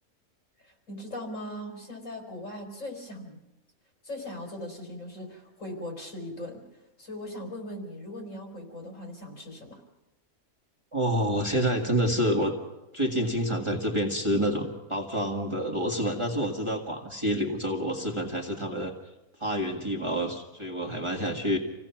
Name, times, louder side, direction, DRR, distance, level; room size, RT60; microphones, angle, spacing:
voice 1, 0.6-3.4 4.0-6.6 7.0-9.8, left 1 dB, 60° left, 1 dB, 4.6 m, -39 dB
voice 2, 10.9-12.6 12.9-18.9 19.4-21.6, equal, 20° right, 0 dB, 1.9 m, -28 dB
27.5 x 17.0 x 5.9 m, 0.99 s
omnidirectional pair, 1.5 m